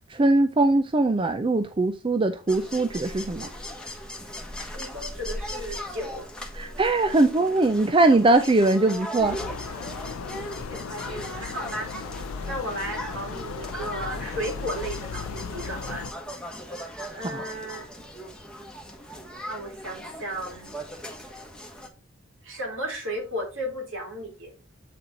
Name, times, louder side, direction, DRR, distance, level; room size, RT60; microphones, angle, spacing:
voice 1, 0.1-3.5 6.5-9.4, right 2 dB, 25° right, 0.4 m, -21 dB
sound 1, 2.5-21.9, equal, 5° left, 1.2 m, -39 dB
voice 2, 4.7-6.3 10.6-16.1 17.1-18.0 19.5-20.8 22.4-24.5, right 1 dB, 65° right, 3.2 m, -35 dB
sound 2, 9.2-16.1, left 5 dB, 80° left, 0.5 m, -36 dB
8.4 x 4.2 x 4.0 m
head